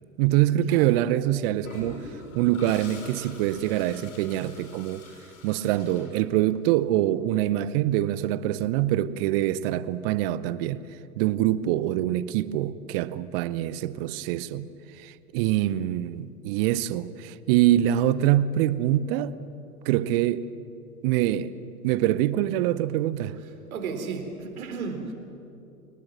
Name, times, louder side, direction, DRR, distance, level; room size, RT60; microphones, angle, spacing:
voice 1, 0.2-2.0 2.3-5.0 5.4-10.8 11.2-14.7 15.0-19.4 19.8-20.5 21.0-21.5 21.8-23.4, right 13 dB, 40° right, 0.9 m, -24 dB
Toilet flush, 1.6-6.7, left 2 dB, 65° left, 5.9 m, -44 dB
voice 2, 23.7-25.1, right 5 dB, 65° right, 4.1 m, -33 dB
29.0 x 18.5 x 7.6 m
figure-of-eight pair, 95°, 45 cm